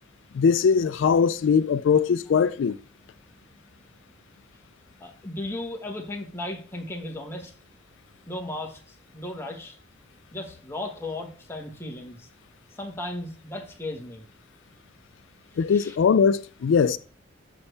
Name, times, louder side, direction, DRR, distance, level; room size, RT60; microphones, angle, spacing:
voice 1, 0.3-2.8 15.6-17.0, left 6 dB, 75° left, 0.3 m, -21 dB
voice 2, 5.0-7.5 8.3-9.8 10.3-12.3 12.8-14.2 15.7-16.0, left 1 dB, 10° left, 1.4 m, -36 dB
7.0 x 6.7 x 3.3 m
head